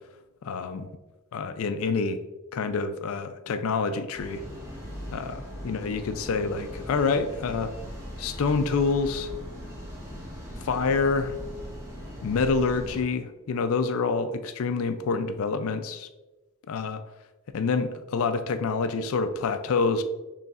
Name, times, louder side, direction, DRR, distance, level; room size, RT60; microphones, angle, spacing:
voice 1, 0.4-0.9 1.3-2.2 2.5-4.4 5.1-7.8 8.2-9.3 10.6-11.4 12.2-16.1 16.7-17.0 17.5-20.0, left 4 dB, 65° left, 10 dB, 0.4 m, -27 dB
sound 1, 4.1-13.0, equal, 15° right, 0.9 m, -39 dB
6.5 x 3.1 x 2.4 m, 1.1 s
head